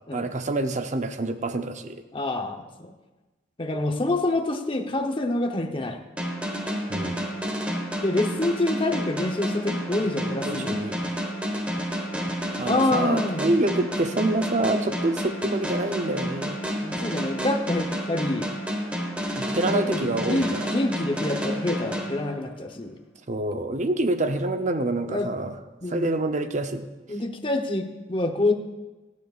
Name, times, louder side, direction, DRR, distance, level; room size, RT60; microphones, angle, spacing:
voice 1, 0.1-2.0 6.9-7.2 9.7-10.1 10.5-10.9 12.5-16.7 19.4-20.7 23.3-25.5 25.9-26.9, right 2 dB, 40° right, 7 dB, 0.8 m, -27 dB
voice 2, 2.1-2.9 3.6-6.0 8.0-10.8 12.6-13.5 16.6-18.5 19.6-23.0 25.1-25.3 25.8-26.1 27.1-28.5, left 2 dB, 30° left, 4 dB, 1.0 m, -27 dB
sound 1, 6.2-22.8, equal, 5° right, 1.5 m, -30 dB
26.0 x 9.5 x 2.5 m, 1.2 s
head